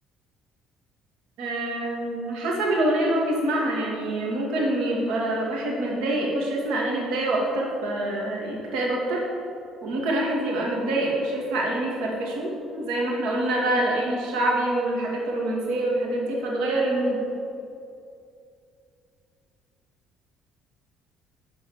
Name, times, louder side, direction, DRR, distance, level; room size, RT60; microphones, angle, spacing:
voice 1, 1.4-9.2 9.8-17.2, right 1 dB, 80° right, -2 dB, 2.6 m, -26 dB
12.5 x 4.6 x 7.5 m, 2.5 s
cardioid pair, 105°, 0 cm